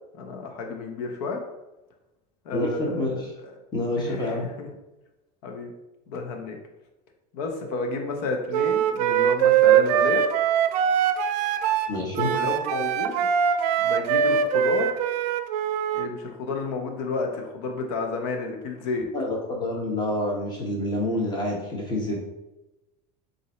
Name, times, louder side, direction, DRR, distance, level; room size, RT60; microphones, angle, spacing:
voice 1, 0.1-1.4 2.4-3.5 4.0-4.7 5.4-5.7 6.1-6.6 7.3-10.2 12.2-13.3 13.8-15.0 15.9-19.1, left 3 dB, 70° left, 3 dB, 1.0 m, -31 dB
voice 2, 2.5-3.3 3.7-4.4 11.9-12.3 19.1-22.2, left 1 dB, 20° left, -2 dB, 1.2 m, -27 dB
Wind instrument woodwind instrument, 8.5-16.1, right 9 dB, 80° right, 0.4 m, -22 dB
3.9 x 2.7 x 4.3 m, 0.98 s
supercardioid pair, 130°, 20 cm